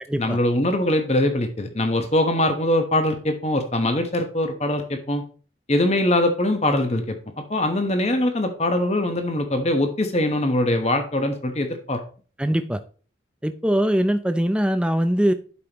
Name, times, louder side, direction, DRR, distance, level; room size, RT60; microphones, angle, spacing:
voice 1, 0.2-5.2 5.7-7.2 7.5-12.0, left 1 dB, 35° left, 6 dB, 1.1 m, -22 dB
voice 2, 12.4-12.8 13.4-15.3, equal, 5° right, 10 dB, 0.5 m, -21 dB
11.5 x 5.1 x 3.0 m, 0.39 s
head